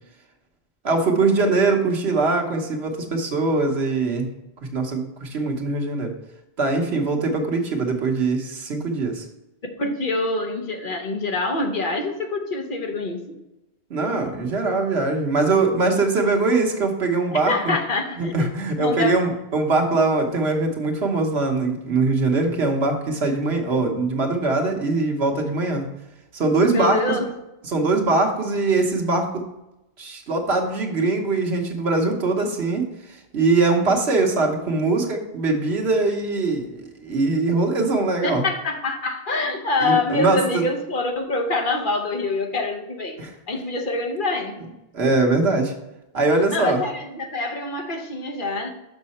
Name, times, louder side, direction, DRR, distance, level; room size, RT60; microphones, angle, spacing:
voice 1, 0.8-4.3 4.7-6.1 6.6-9.2 13.9-17.7 18.2-25.8 26.3-27.2 27.7-29.4 30.0-38.4 39.8-40.6 43.2-43.3 44.9-45.7 46.1-46.8, right 3 dB, 85° right, 3 dB, 1.4 m, -22 dB
voice 2, 9.8-13.4 17.3-18.5 18.8-19.2 26.7-27.3 38.2-43.2 43.5-44.6 46.5-48.7, left 3 dB, 55° left, 4 dB, 1.1 m, -25 dB
6.4 x 6.1 x 4.2 m, 0.93 s
omnidirectional pair, 1.1 m